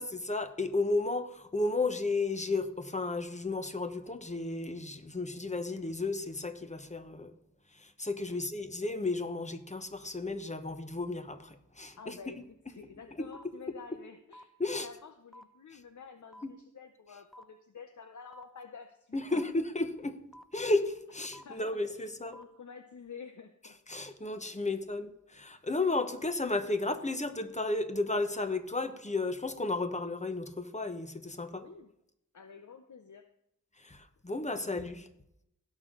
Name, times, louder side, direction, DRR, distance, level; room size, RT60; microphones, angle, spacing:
voice 1, 0.0-7.3 7.7-12.1 13.2-13.3 14.6-14.9 16.4-16.5 19.1-20.2 20.5-22.4 23.9-31.6 33.8-35.1, left 2 dB, 20° left, 9 dB, 1.1 m, -33 dB
voice 2, 12.0-19.4 21.4-23.7 31.6-31.9 32.3-33.2, left 5 dB, 65° left, 7 dB, 0.8 m, -50 dB
sound 1, 13.3-13.4 14.3-14.4 15.3-15.4 16.3-16.4 17.3-17.4 18.3-18.4 19.3-19.4 20.3-20.4 21.3-21.4 22.3-22.4, equal, ahead, 0.8 m, -50 dB
16.5 x 6.3 x 3.8 m, 0.80 s
wide cardioid pair, 60°, 32 cm